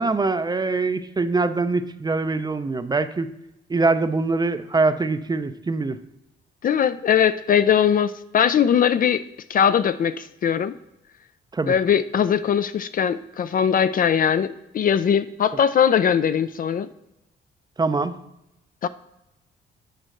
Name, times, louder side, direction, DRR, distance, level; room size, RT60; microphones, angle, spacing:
voice 1, 0.0-3.3 3.7-6.0 11.5-11.8 17.8-18.1, right 3 dB, 20° right, 11 dB, 0.5 m, -23 dB
voice 2, 6.6-9.2 9.5-10.7 11.7-16.9 18.8-18.9, left 8 dB, 45° left, 13 dB, 0.4 m, -20 dB
9.1 x 4.4 x 6.4 m, 0.90 s
cardioid pair, 90°, 20 cm